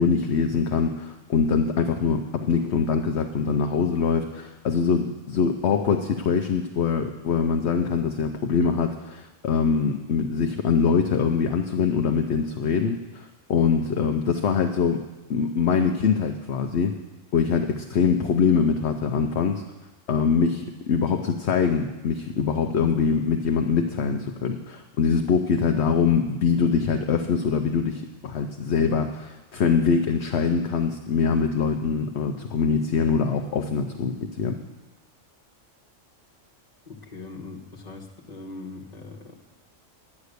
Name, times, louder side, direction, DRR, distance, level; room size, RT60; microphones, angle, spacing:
voice 1, 0.0-15.0 15.3-16.9 17.3-19.6 20.1-34.5, left 6 dB, 60° left, 4 dB, 0.9 m, -23 dB
voice 2, 36.8-39.3, left 3 dB, 35° left, 0 dB, 1.4 m, -40 dB
11.0 x 9.3 x 6.6 m, 1.1 s
omnidirectional pair, 1.4 m